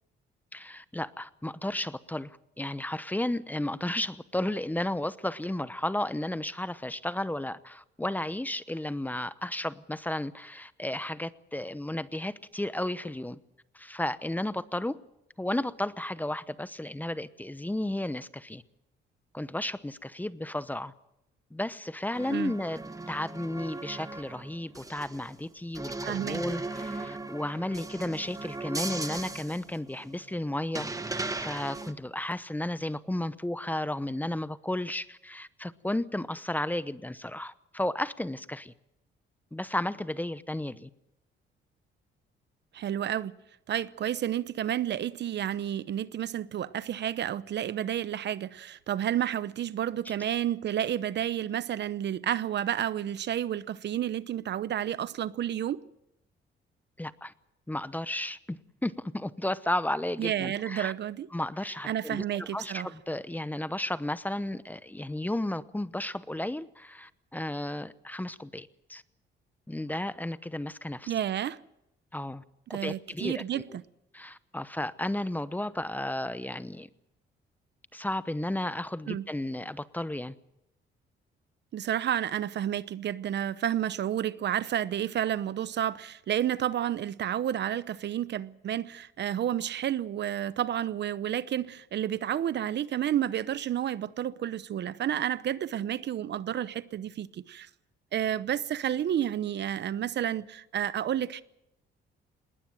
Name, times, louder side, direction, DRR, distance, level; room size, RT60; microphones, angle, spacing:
voice 1, 0.5-13.4 13.7-15.0 15.4-18.6 19.3-20.9 21.5-22.8 23.1-38.7 39.5-40.9 57.0-57.3 57.7-58.6 58.8-60.9 61.3-69.0 69.7-71.1 72.1-72.4 72.7-73.8 74.1-76.9 77.9-80.3, left 1 dB, 10° left, 0.9 m, -33 dB
sound 1, 22.1-25.4 25.7-30.4 30.7-31.9, right 2 dB, 15° right, 1.5 m, -38 dB
voice 2, 26.0-26.4 42.7-43.3 43.7-55.8 60.2-61.3 61.8-62.9 71.1-71.6 72.7-73.8 79.1-79.2 81.7-97.7 98.1-101.4, right 10 dB, 60° right, 0.8 m, -31 dB
20.0 x 19.0 x 7.8 m
cardioid pair, 90°, 20 cm